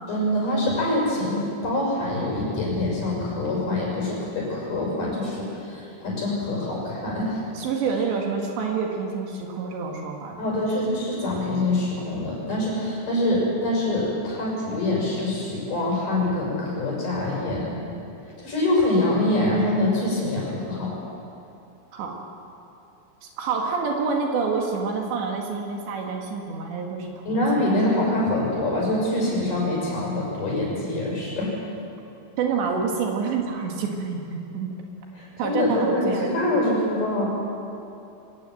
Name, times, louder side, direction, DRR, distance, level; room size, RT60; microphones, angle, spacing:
voice 1, 0.1-7.4 10.4-17.8 18.4-20.9 27.3-31.5 35.1-37.2, left 1 dB, 40° left, -3 dB, 7.3 m, -25 dB
voice 2, 7.6-10.6 21.9-22.2 23.2-27.7 32.4-34.7 35.4-36.3, right 5 dB, 70° right, 1 dB, 3.9 m, -27 dB
24.0 x 19.0 x 7.8 m, 2.7 s
omnidirectional pair, 5.6 m